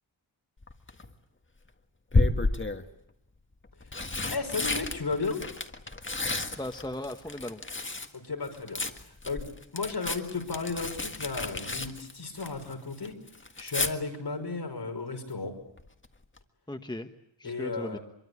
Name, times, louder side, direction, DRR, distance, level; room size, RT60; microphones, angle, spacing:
Tearing, 0.6-1.1 2.1-2.9 3.6-8.1 8.4-12.7 13.0-13.9 15.8-16.1 16.4-16.5, left 2 dB, 25° left, 1.8 m, -31 dB
voice 1, 4.3-5.4 8.1-9.5 9.7-13.2 13.6-15.5 17.4-18.0, left 4 dB, 55° left, 4 dB, 5.6 m, -34 dB
voice 2, 6.6-7.6 16.7-17.1 17.4-18.0, left 1 dB, 10° left, 6 dB, 1.2 m, -37 dB
25.5 x 23.5 x 8.4 m, 0.76 s
wide cardioid pair, 105°, 46 cm